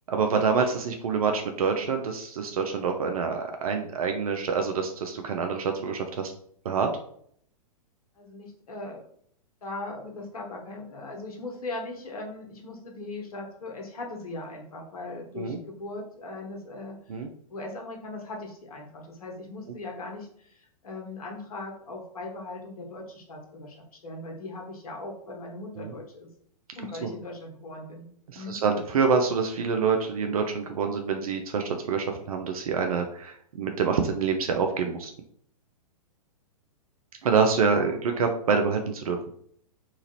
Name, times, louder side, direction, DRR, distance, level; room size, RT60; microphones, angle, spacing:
voice 1, 0.1-6.3 6.7-6.9 15.4-15.6 17.1-17.3 25.8-25.9 28.3-35.1 37.2-39.2, right 5 dB, 65° right, 4 dB, 0.5 m, -26 dB
voice 2, 8.2-9.0 9.6-17.0 17.5-23.7 24.0-26.3 26.8-28.1 28.3-28.6 37.6-38.0, left 2 dB, 70° left, 1 dB, 0.9 m, -39 dB
2.9 x 2.4 x 2.8 m, 0.64 s
figure-of-eight pair, 110°, 19 cm